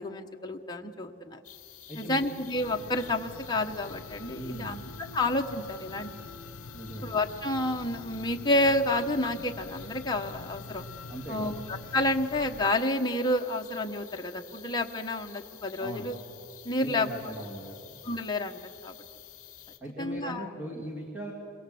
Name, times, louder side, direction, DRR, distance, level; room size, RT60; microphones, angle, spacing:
voice 1, 0.0-1.4 2.0-4.8 5.1-6.1 7.0-10.8 11.3-16.2 16.6-17.1 18.0-18.9 20.0-20.5, left 1 dB, 20° left, 2 dB, 1.1 m, -29 dB
sound 1, 1.4-19.8, left 11 dB, 35° left, 2.3 m, -50 dB
voice 2, 1.9-2.2 4.3-4.8 6.7-7.0 11.1-11.6 15.8-16.1 16.8-17.8 19.8-21.3, right 1 dB, 10° right, -3 dB, 2.4 m, -39 dB
sound 2, 2.5-12.7, left 3 dB, 85° left, 0.8 m, -45 dB
27.5 x 22.5 x 7.8 m, 2.7 s
head